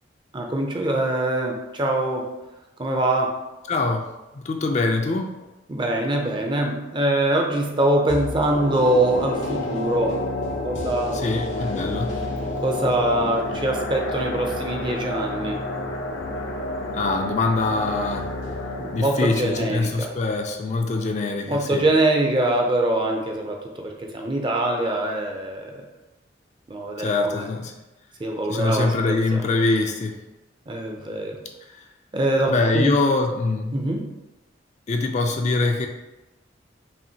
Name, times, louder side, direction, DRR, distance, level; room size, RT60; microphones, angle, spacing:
voice 1, 0.3-2.4 2.8-3.4 5.7-10.2 10.6-11.2 12.6-15.6 18.8-20.1 21.5-25.8 26.7-27.4 28.2-29.4 30.7-31.4 32.1-33.0 33.7-34.1, right 1 dB, 25° right, 2 dB, 0.5 m, -23 dB
voice 2, 3.7-4.1 4.3-5.3 11.1-12.1 16.9-18.3 18.9-21.8 27.0-27.7 28.5-30.2 31.7-31.8 32.5-33.7 34.9-35.9, left 3 dB, 35° left, 3 dB, 0.3 m, -23 dB
sound 1, 8.1-21.2 21.5-21.6, left 2 dB, 80° left, 0.7 m, -30 dB
5.5 x 2.5 x 2.7 m, 1.0 s
head